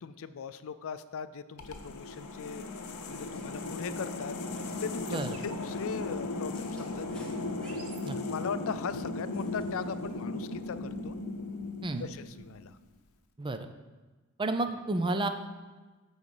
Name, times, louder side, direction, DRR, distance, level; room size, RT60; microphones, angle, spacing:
voice 1, 0.0-2.7 3.1-4.3 4.8-7.3 8.3-11.2 12.0-12.8, left 6 dB, 65° left, 13 dB, 0.4 m, -39 dB
sound 1, 1.6-12.7, left 2 dB, 80° left, 0.8 m, -37 dB
sound 2, 3.1-3.5 4.5-5.3 6.2-8.1 9.3-10.2, left 1 dB, 5° left, 1.5 m, -58 dB
sound 3, 5.0-8.7, right 4 dB, 75° right, 1.1 m, -54 dB
voice 2, 5.1-5.4 8.0-8.2 11.8-12.1 13.4-13.7 14.4-15.3, right 2 dB, 20° right, 8 dB, 0.5 m, -31 dB
9.8 x 4.0 x 7.1 m, 1.3 s
head